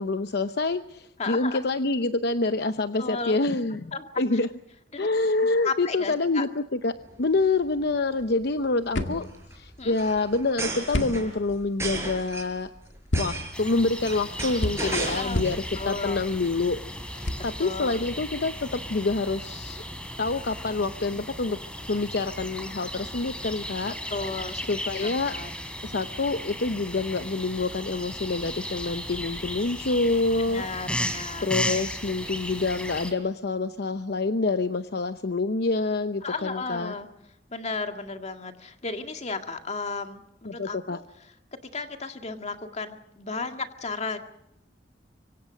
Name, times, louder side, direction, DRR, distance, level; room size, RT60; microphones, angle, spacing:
voice 1, 0.0-4.5 5.0-9.3 9.5-12.7 13.2-19.8 20.2-21.6 21.9-24.0 24.7-25.3 25.8-30.6 31.0-31.1 31.4-36.9 40.5-41.0, left 3 dB, 65° left, 10 dB, 0.8 m, -27 dB
voice 2, 1.2-1.6 3.0-3.4 3.9-4.1 4.9-5.1 5.6-6.5 9.8-9.9 14.8-15.5 15.8-16.2 17.6-18.0 24.1-24.7 25.0-25.5 30.4-31.5 36.2-37.1 37.5-40.2 40.5-41.0 41.7-44.2, left 4 dB, 40° left, 6 dB, 2.1 m, -34 dB
sound 1, 7.0-7.2 7.5-7.6 7.8-8.1 9.0-15.6 16.0-16.5, right 2 dB, 15° right, 5.4 m, -35 dB
sound 2, 8.1-18.9, left 1 dB, 90° left, 2.0 m, -34 dB
sound 3, 13.5-33.1, equal, 5° left, 3.2 m, -36 dB
25.5 x 24.0 x 6.4 m, 0.80 s
head